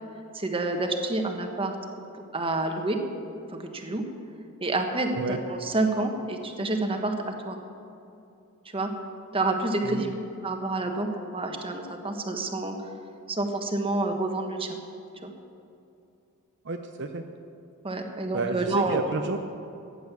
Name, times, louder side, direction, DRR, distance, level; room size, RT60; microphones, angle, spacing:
voice 1, 0.3-1.7 2.1-3.0 3.5-4.0 4.6-7.6 8.7-8.9 9.3-10.1 10.4-12.8 13.3-14.7 15.2-15.3 17.8-19.2, right 2 dB, 25° right, 4 dB, 1.4 m, -28 dB
voice 2, 16.6-17.2 18.3-19.4, right 3 dB, 55° right, 5 dB, 0.7 m, -30 dB
15.0 x 10.0 x 7.0 m, 2.7 s
head